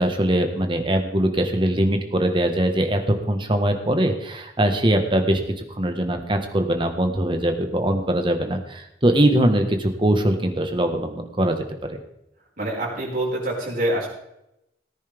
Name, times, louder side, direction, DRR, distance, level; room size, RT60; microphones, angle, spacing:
voice 1, 0.0-3.0 3.3-5.4 5.8-12.0, right 1 dB, 30° right, 5 dB, 1.4 m, -22 dB
voice 2, 12.6-14.1, right 1 dB, 50° right, -4 dB, 5.4 m, -25 dB
18.0 x 9.9 x 3.5 m, 0.84 s
head